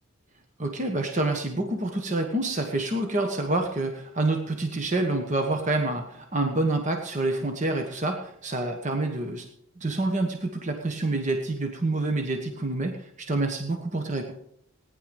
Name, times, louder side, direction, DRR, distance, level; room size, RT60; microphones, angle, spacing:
voice 1, 0.6-9.5 9.8-14.3, right 2 dB, 35° right, 4 dB, 1.3 m, -27 dB
18.5 x 10.5 x 5.3 m, 0.71 s
head